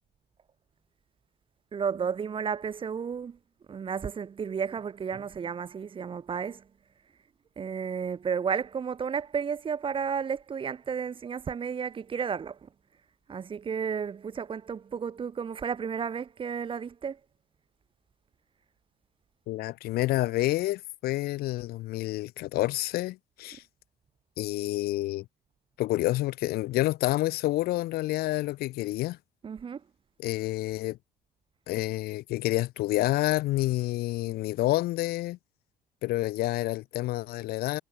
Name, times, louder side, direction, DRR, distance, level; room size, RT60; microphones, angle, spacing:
voice 1, 1.7-3.4 3.7-6.6 7.6-12.7 13.3-17.2 29.4-29.8, right 6 dB, 30° right, 0.7 m, -32 dB
voice 2, 19.5-23.6 24.4-25.2 25.8-29.2 30.2-31.0 31.7-35.4 36.0-37.8, left 17 dB, 70° left, 0.4 m, -28 dB
cardioid pair, 110°, 17 cm